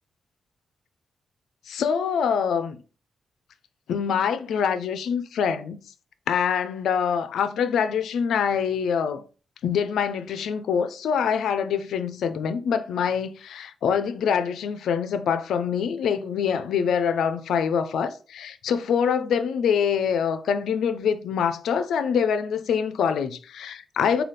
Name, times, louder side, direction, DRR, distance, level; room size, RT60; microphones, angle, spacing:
voice 1, 1.7-2.8 3.9-5.8 6.3-9.2 9.6-24.2, left 7 dB, 80° left, 0.4 m, -25 dB
4.0 x 2.3 x 3.3 m
cardioid pair, 90°, 0 cm